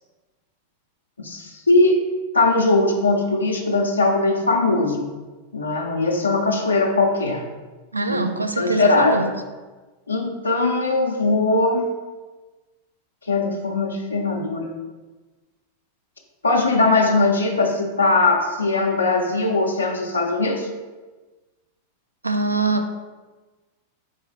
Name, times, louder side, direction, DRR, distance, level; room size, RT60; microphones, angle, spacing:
voice 1, 1.2-2.1 2.3-5.1 5.5-7.4 8.1-8.2 8.6-9.2 10.1-11.8 13.3-14.7 16.4-20.7, left 2 dB, 75° left, 1 dB, 0.5 m, -20 dB
voice 2, 7.9-9.3 22.2-22.9, right 3 dB, 80° right, 7 dB, 0.3 m, -23 dB
4.7 x 3.8 x 3.0 m, 1.2 s
figure-of-eight pair, 90°, 0 cm